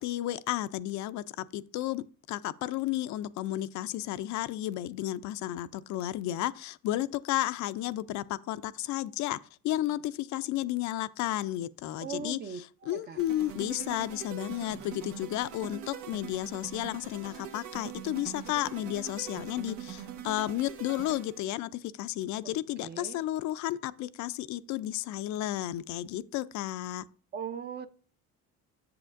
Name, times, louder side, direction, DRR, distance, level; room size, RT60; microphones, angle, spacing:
voice 1, 0.0-9.4 9.6-27.0, left 14 dB, 60° left, 0.4 m, -33 dB
voice 2, 12.0-13.2 22.4-22.5 22.8-23.2 27.3-27.9, right 7 dB, 30° right, 0.5 m, -39 dB
sound 1, 13.2-21.5, right 9 dB, 80° right, 1.1 m, -43 dB
7.6 x 7.2 x 2.5 m
cardioid pair, 105°, 33 cm